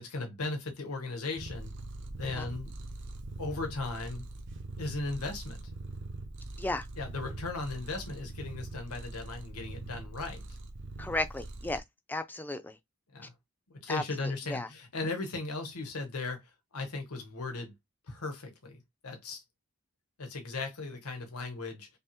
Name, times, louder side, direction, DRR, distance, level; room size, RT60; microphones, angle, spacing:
voice 1, 0.0-1.7 2.1-2.7 3.4-4.3 4.8-5.6 7.0-10.4 13.1-13.3 13.7-17.7 18.1-19.4 20.2-21.9, left 3 dB, 85° left, 1.0 m, -37 dB
Purr, 1.4-11.8, right 2 dB, 55° right, 0.8 m, -42 dB
voice 2, 11.0-11.8 12.1-12.8 13.9-14.7, left 2 dB, 10° left, 0.4 m, -34 dB
5.3 x 2.0 x 2.9 m
head